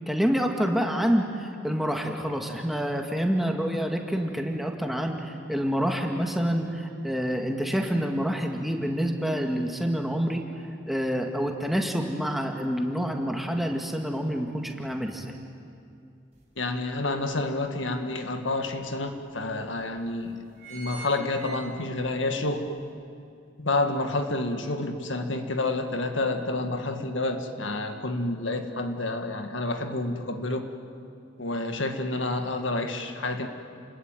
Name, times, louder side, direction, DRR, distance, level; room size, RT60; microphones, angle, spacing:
voice 1, 0.1-10.4 10.9-15.3, equal, ahead, 2 dB, 1.9 m, -27 dB
sound 1, 16.4-16.5 16.9-18.1 18.7-18.8 19.1-19.2 19.9-20.1 20.3-22.2 22.6-22.7, right 3 dB, 35° right, 5.3 m, -44 dB
voice 2, 16.6-20.4 20.7-22.7 23.6-30.7 31.4-33.5, left 2 dB, 80° left, 6 dB, 1.9 m, -29 dB
29.5 x 21.0 x 9.1 m, 2.5 s
head